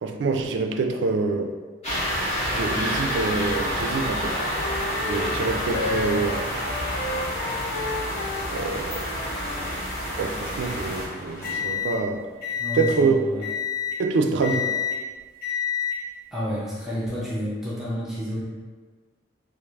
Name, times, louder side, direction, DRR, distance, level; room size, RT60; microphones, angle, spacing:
voice 1, 0.0-1.5 2.5-4.4 5.1-6.5 8.5-9.2 10.2-12.2 12.7-13.2 14.0-14.7, right 4 dB, 85° right, 5 dB, 0.4 m, -26 dB
sound 1, 1.8-11.0, equal, 35° left, 1.1 m, -28 dB
Wind instrument woodwind instrument, 3.4-9.7, left 2 dB, 85° left, 0.5 m, -34 dB
sound 2, 11.0-13.0 13.4-14.0 14.4-15.0 15.4-16.0 16.8-17.1, left 8 dB, 55° left, 1.4 m, -29 dB
voice 2, 12.6-13.4 16.3-18.4, equal, 5° right, -8 dB, 0.5 m, -30 dB
4.6 x 2.5 x 2.3 m, 1.4 s
head